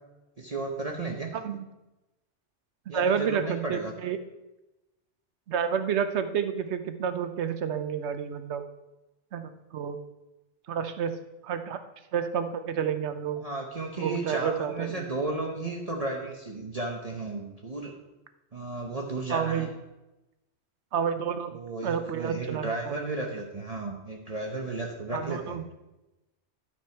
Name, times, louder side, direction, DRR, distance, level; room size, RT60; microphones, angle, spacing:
voice 1, 0.4-1.3 2.9-3.9 13.4-18.0 18.5-19.7 21.5-25.6, right 2 dB, 35° right, 0 dB, 0.9 m, -34 dB
voice 2, 1.3-1.6 2.9-4.2 5.5-8.6 9.3-10.0 10.7-11.2 11.4-11.8 12.1-13.4 14.0-15.1 19.3-19.7 20.9-21.5 21.8-23.1 25.1-25.6, right 7 dB, 70° right, 9 dB, 1.0 m, -30 dB
11.5 x 6.0 x 4.4 m, 1.0 s
omnidirectional pair, 1.2 m